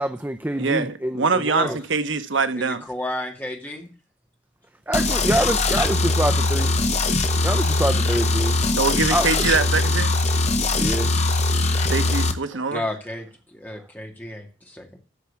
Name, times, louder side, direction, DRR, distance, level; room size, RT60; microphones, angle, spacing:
voice 1, 0.0-1.8 4.9-6.7 7.4-8.6 9.1-9.3 10.8-11.1 12.5-12.7 13.7-13.9, right 1 dB, 10° right, 0.5 m, -26 dB
voice 2, 0.6-2.8 8.8-10.1 11.9-12.8, right 4 dB, 75° right, 1.0 m, -23 dB
voice 3, 2.5-3.9 8.6-8.8 12.7-15.0, left 1 dB, 10° left, 2.2 m, -33 dB
sound 1, 4.9-12.3, left 2 dB, 35° left, 1.2 m, -21 dB
13.5 x 4.8 x 8.4 m
head